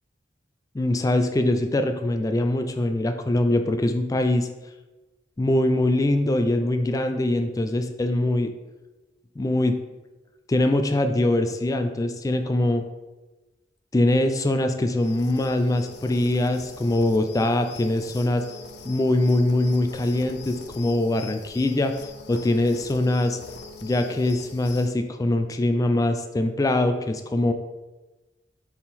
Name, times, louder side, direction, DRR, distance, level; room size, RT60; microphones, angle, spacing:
voice 1, 0.7-4.5 5.4-8.5 9.4-9.7 10.5-12.8 13.9-18.4 18.8-21.9 22.3-23.4 23.8-27.5, left 1 dB, 20° left, 7 dB, 0.3 m, -23 dB
sound 1, 15.0-24.9, left 4 dB, 65° left, 0.6 m, -43 dB
6.9 x 3.7 x 4.1 m, 1.1 s
head